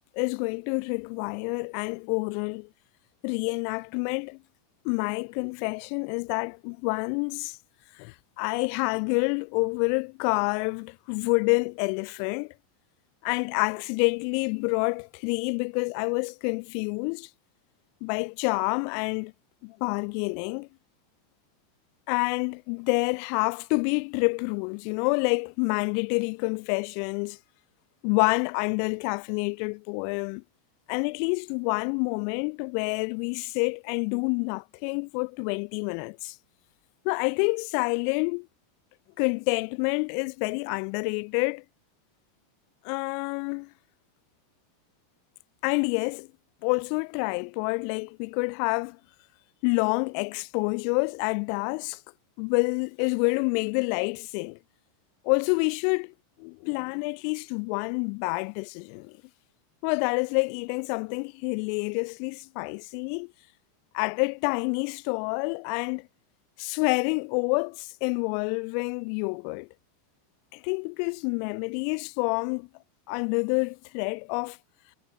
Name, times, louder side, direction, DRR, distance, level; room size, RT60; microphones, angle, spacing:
voice 1, 0.1-2.7 3.2-4.4 4.8-7.6 8.0-12.5 13.2-17.3 18.0-19.3 19.6-20.7 22.1-27.4 28.0-30.4 30.9-36.4 37.0-38.5 39.2-41.6 42.8-43.7 45.6-46.3 46.6-49.0 49.6-52.0 52.4-54.6 55.2-56.1 56.4-59.2 59.8-63.3 63.9-66.1 66.6-69.7 70.5-72.7 73.1-74.6, left 40 dB or more, 50° left, 1.1 m, -28 dB
figure-of-eight pair, 85°, 0 cm